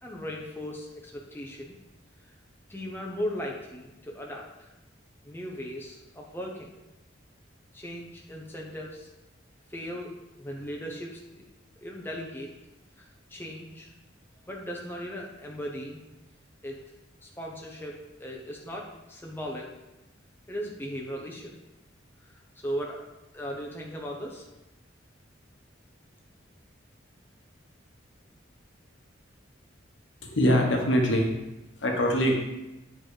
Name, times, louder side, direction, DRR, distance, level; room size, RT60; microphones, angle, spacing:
voice 1, 0.0-1.7 2.7-4.7 5.2-6.7 7.7-9.1 9.7-10.1 10.4-11.4 11.8-12.5 13.0-13.9 14.5-16.0 16.6-16.8 17.2-19.7 20.5-21.5 22.6-23.0 23.3-24.5, equal, 10° left, -2 dB, 0.8 m, -37 dB
voice 2, 30.2-31.3 31.8-32.3, equal, 65° left, 1 dB, 1.2 m, -23 dB
8.8 x 4.0 x 4.9 m, 0.97 s
head